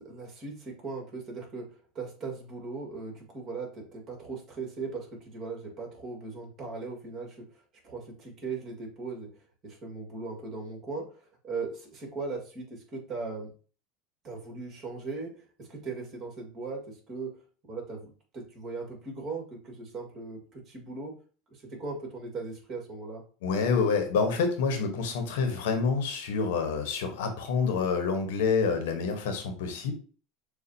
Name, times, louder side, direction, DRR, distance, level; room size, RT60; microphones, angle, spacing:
voice 1, 0.0-9.3 9.6-13.5 14.2-17.3 17.7-21.1 21.5-23.2, right 4 dB, 35° right, 1 dB, 2.0 m, -39 dB
voice 2, 23.4-29.9, left 5 dB, 80° left, 5 dB, 1.0 m, -27 dB
6.9 x 2.4 x 2.8 m, 0.39 s
supercardioid pair, 120°, 0 cm